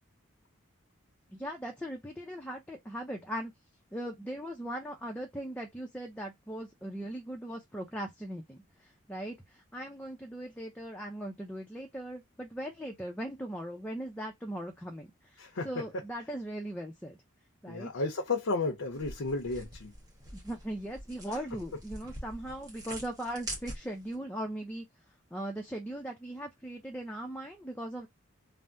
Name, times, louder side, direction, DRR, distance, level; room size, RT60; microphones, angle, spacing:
voice 1, 1.3-3.5 3.9-15.4 15.6-17.2 17.6-17.9 20.3-24.9 25.3-28.1, right 1 dB, 5° left, 0.4 m, -39 dB
voice 2, 17.7-19.9, left 3 dB, 80° left, 0.7 m, -32 dB
sound 1, 18.9-24.2, right 1 dB, 15° right, 1.2 m, -45 dB
3.4 x 2.0 x 2.5 m
head